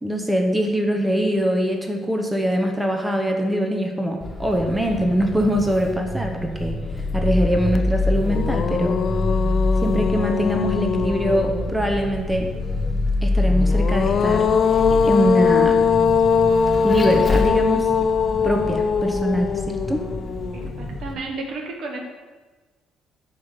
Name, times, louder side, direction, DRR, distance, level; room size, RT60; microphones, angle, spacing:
voice 1, 0.0-6.8 7.1-9.0 9.8-12.5 13.2-15.8 16.8-17.9 18.4-20.0, equal, 15° right, 3 dB, 1.3 m, -23 dB
Vehicle, 4.2-21.1, left 2 dB, 25° left, 1.7 m, -26 dB
sound 1, 7.7-7.8 8.2-11.9 13.6-20.8, left 6 dB, 50° left, 0.4 m, -21 dB
voice 2, 20.5-22.0, right 3 dB, 55° right, 2 dB, 1.2 m, -32 dB
10.0 x 3.7 x 6.5 m, 1.3 s
figure-of-eight pair, 45°, 0 cm